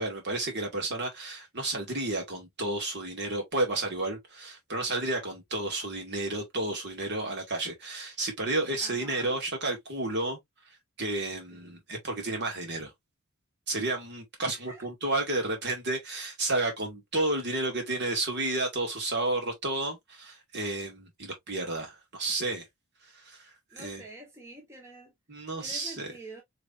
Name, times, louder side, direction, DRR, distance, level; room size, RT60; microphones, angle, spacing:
voice 1, 0.0-10.4 11.0-12.9 13.7-22.7 23.0-24.0 25.3-26.1, right 2 dB, 50° right, 2.2 m, -31 dB
voice 2, 8.8-9.4 11.5-11.8 14.4-14.9 23.7-25.1 25.6-26.4, right 1 dB, 15° right, 1.2 m, -47 dB
4.8 x 3.4 x 2.6 m
head